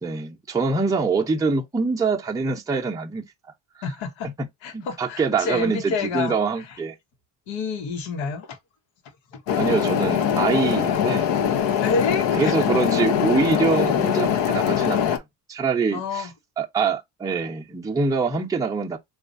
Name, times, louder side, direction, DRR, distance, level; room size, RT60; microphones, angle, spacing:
voice 1, 0.0-3.2 4.2-4.5 4.7-6.9 9.6-11.3 12.4-15.2 15.5-16.3 16.6-19.0, right 4 dB, 10° right, 0.5 m, -24 dB
voice 2, 3.8-4.3 4.6-6.4 7.5-8.6 9.3-9.4 11.8-12.7 15.9-16.3, left 4 dB, 90° left, 1.1 m, -28 dB
sound 1, 9.5-15.2, left 9 dB, 70° left, 0.7 m, -22 dB
4.1 x 2.4 x 2.5 m
cardioid pair, 135°, 45 cm